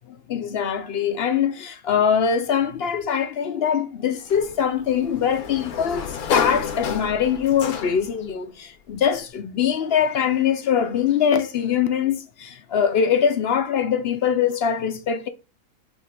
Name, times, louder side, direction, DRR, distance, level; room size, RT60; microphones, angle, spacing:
voice 1, 0.3-15.3, left 8 dB, 65° left, 0.6 m, -22 dB
Sliding door, 4.3-8.2, left 7 dB, 85° left, 1.3 m, -30 dB
7.1 x 2.6 x 5.1 m
omnidirectional pair, 1.5 m